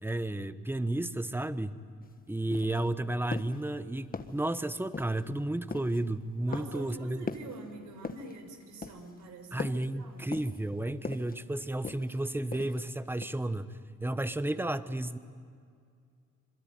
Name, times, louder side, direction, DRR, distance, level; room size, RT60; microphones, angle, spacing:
voice 1, 0.0-1.8 2.3-7.3 9.5-15.2, right 1 dB, 5° right, 12 dB, 1.1 m, -32 dB
sound 1, 2.0-2.1 2.5-2.9 3.3-3.6 4.1-4.5 4.9-5.3 5.7-6.0 6.5-6.9 7.3-7.6 8.0-8.4 8.8-9.2 9.6-9.9 10.3-10.7 11.0-11.4 11.8-12.2 12.5-12.9 13.2-13.3, left 4 dB, 30° left, 1.5 m, -40 dB
voice 2, 6.5-10.3, right 2 dB, 75° right, 4 dB, 5.8 m, -46 dB
26.5 x 22.0 x 9.4 m, 2.2 s
cardioid pair, 90°, 30 cm